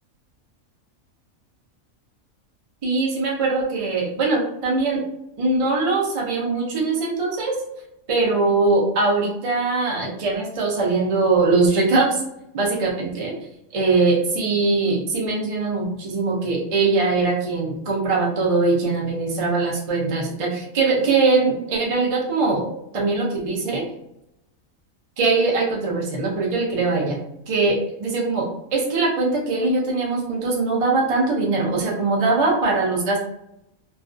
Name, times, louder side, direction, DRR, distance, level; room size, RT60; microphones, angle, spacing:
voice 1, 2.8-5.0 5.4-7.5 8.1-12.2 12.5-13.3 13.7-22.7 22.9-23.8 25.2-27.2 27.5-33.2, right 3 dB, 55° right, -2 dB, 0.3 m, -21 dB
2.4 x 2.2 x 2.5 m, 0.81 s
omnidirectional pair, 1.4 m